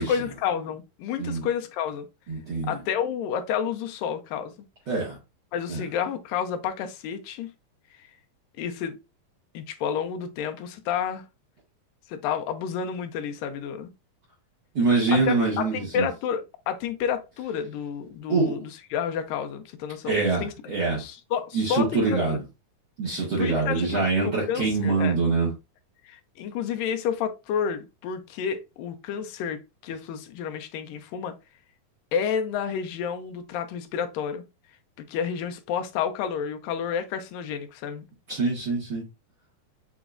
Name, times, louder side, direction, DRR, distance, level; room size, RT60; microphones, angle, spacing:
voice 1, 0.0-2.1 2.7-4.5 5.5-7.5 8.6-9.0 9.5-11.3 12.1-13.9 15.1-20.5 21.0-22.4 23.1-25.2 26.1-31.3 32.1-34.4 35.0-38.0, left 8 dB, 80° left, 2.3 m, -30 dB
voice 2, 2.3-2.8 4.9-5.2 5.7-5.8 14.8-16.1 18.3-18.6 20.0-21.0 21.5-22.4 23.0-25.5 38.3-39.0, right 3 dB, 50° right, 1.9 m, -24 dB
7.0 x 3.0 x 2.4 m
omnidirectional pair, 4.0 m